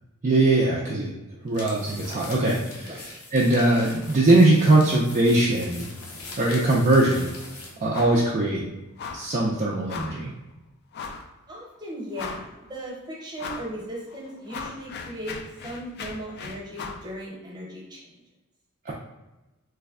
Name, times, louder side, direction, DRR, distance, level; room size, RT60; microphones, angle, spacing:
voice 1, 0.2-1.1 1.4-5.9 6.4-7.3 7.8-8.6 9.1-10.3 18.9-19.0, right 2 dB, 35° right, -4 dB, 0.4 m, -21 dB
sound 1, 1.5-7.8, left 3 dB, 85° left, 0.8 m, -42 dB
sound 2, 7.9-8.3 8.5-8.7 9.0-9.3 9.9-10.2 10.9-11.3 11.8-11.9 12.1-12.7 13.4-13.7 14.1-17.1, left 5 dB, 50° left, 0.3 m, -37 dB
voice 2, 11.5-15.4 15.6-18.0, equal, 20° right, -3 dB, 0.9 m, -37 dB
3.2 x 2.1 x 3.5 m, 1.0 s
head